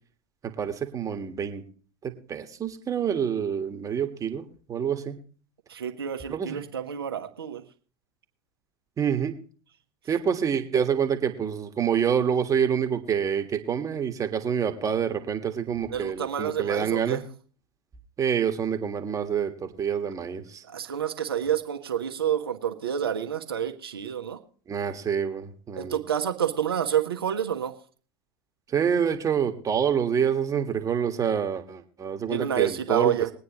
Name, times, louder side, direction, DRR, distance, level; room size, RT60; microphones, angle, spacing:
voice 1, 0.4-1.6 2.0-5.2 6.3-6.6 9.0-9.3 10.1-17.2 18.2-20.6 24.7-26.0 28.7-33.2, right 7 dB, 25° right, 6 dB, 1.7 m, -27 dB
voice 2, 5.7-7.6 15.9-17.2 20.7-24.4 25.8-27.7 32.3-33.3, right 9 dB, 80° right, 6 dB, 1.3 m, -28 dB
22.0 x 9.3 x 3.1 m, 0.41 s
hypercardioid pair, 90°, 12 cm